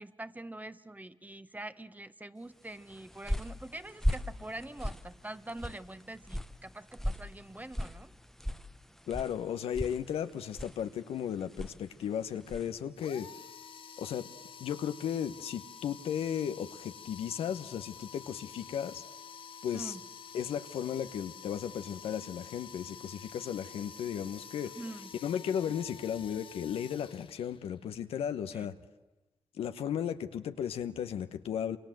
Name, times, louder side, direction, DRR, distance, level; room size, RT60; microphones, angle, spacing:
voice 1, 0.0-8.1 19.7-20.0 24.7-25.1 28.5-28.7, right 1 dB, 15° right, 12 dB, 1.4 m, -44 dB
sound 1, 2.7-12.8, equal, 5° left, 1.1 m, -39 dB
voice 2, 9.1-13.3 14.0-14.3 14.6-19.0 19.6-20.0 20.3-24.7 25.2-28.8 29.5-31.8, left 9 dB, 85° left, 9 dB, 1.1 m, -35 dB
sound 2, 13.0-27.8, left 7 dB, 65° left, 1.0 m, -49 dB
26.5 x 25.5 x 7.8 m, 1.1 s
supercardioid pair, 50°, 10 cm